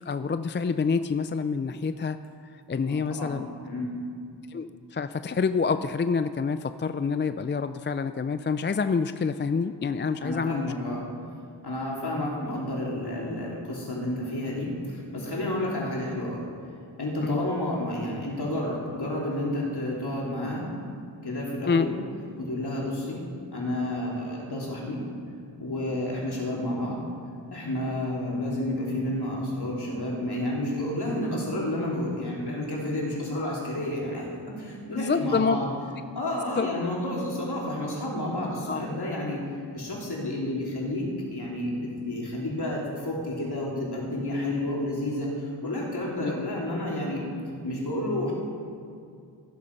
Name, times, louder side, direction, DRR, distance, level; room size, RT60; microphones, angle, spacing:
voice 1, 0.0-2.2 2.5-3.5 4.5-10.7 17.2-17.5 21.7-21.9 34.9-35.6 36.6-36.7 38.7-38.8 46.2-46.3, left 5 dB, 25° left, 11 dB, 0.4 m, -27 dB
voice 2, 2.8-3.4 3.6-3.9 10.2-11.0 11.6-16.5 17.0-20.7 21.2-21.9 22.4-23.2 23.5-25.0 25.6-27.0 27.5-35.7 36.2-39.4 39.7-47.2 47.6-48.3, left 1 dB, 60° left, -4 dB, 3.4 m, -30 dB
15.0 x 7.7 x 5.5 m, 2.3 s
cardioid pair, 50°, 44 cm